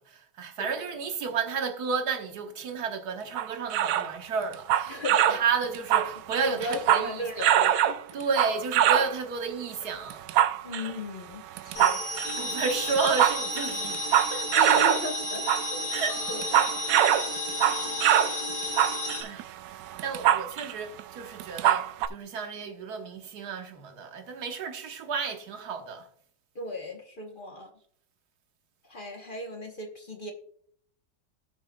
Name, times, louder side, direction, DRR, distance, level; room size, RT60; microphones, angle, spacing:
voice 1, 0.1-5.0 5.3-7.5 8.1-10.2 12.3-14.0 14.3-14.5 15.9-16.2 19.2-19.5 20.0-26.1, right 5 dB, 65° right, 1.6 m, -32 dB
sound 1, 3.4-4.1 4.5-5.5 5.7-7.1 7.4-9.1 10.1-10.9 11.6-12.3 12.9-15.1 15.4-15.7 15.9-18.4 18.6-20.7 21.0-21.1 21.4-22.1, right 11 dB, 80° right, 1.2 m, -23 dB
voice 2, 4.9-5.4 6.4-8.2 10.6-12.2 14.5-15.9 16.3-17.1 17.7-18.0 26.5-27.7 28.9-30.3, left 2 dB, 35° left, 0.9 m, -37 dB
sound 2, 11.8-19.2, left 1 dB, 75° left, 3.0 m, -32 dB
17.5 x 6.3 x 2.2 m
omnidirectional pair, 1.9 m